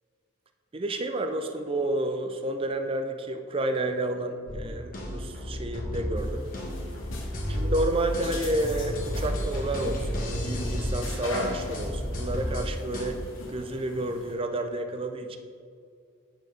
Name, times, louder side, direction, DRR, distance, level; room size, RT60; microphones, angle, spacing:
voice 1, 0.7-6.5 7.5-15.4, right 1 dB, 25° right, 7 dB, 0.4 m, -30 dB
sound 1, 4.5-13.1, equal, 40° left, 1.1 m, -32 dB
sound 2, 6.2-14.3, left 2 dB, 65° left, 1.3 m, -41 dB
8.7 x 6.3 x 3.2 m, 2.3 s
head